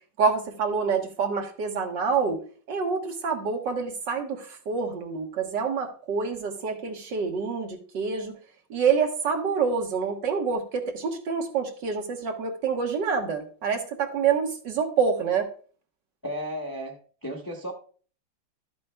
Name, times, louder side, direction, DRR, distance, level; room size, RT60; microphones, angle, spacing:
voice 1, 0.2-8.4 8.7-15.5, right 5 dB, 65° right, 4 dB, 1.9 m, -27 dB
voice 2, 16.2-16.9 17.2-17.7, equal, 15° left, 0 dB, 1.0 m, -33 dB
13.0 x 8.4 x 2.2 m, 0.41 s
omnidirectional pair, 2.1 m